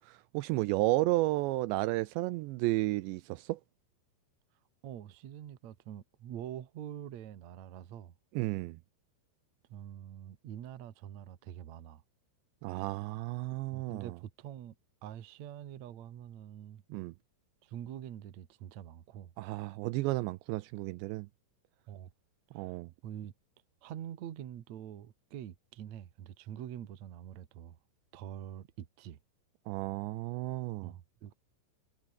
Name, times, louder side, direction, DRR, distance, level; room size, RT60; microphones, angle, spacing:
voice 1, 0.0-3.6 8.4-8.8 12.6-14.1 16.9-17.1 19.4-21.3 22.6-22.9 29.7-30.9, right 19 dB, 80° right, 2.7 m, -32 dB
voice 2, 4.8-8.1 9.7-12.0 13.7-14.7 15.0-16.8 17.6-19.3 21.9-22.1 22.5-22.7 23.0-23.3 23.8-27.8 28.1-29.2 30.8-31.3, right 10 dB, 60° right, 2.0 m, -45 dB
omnidirectional pair, 5.4 m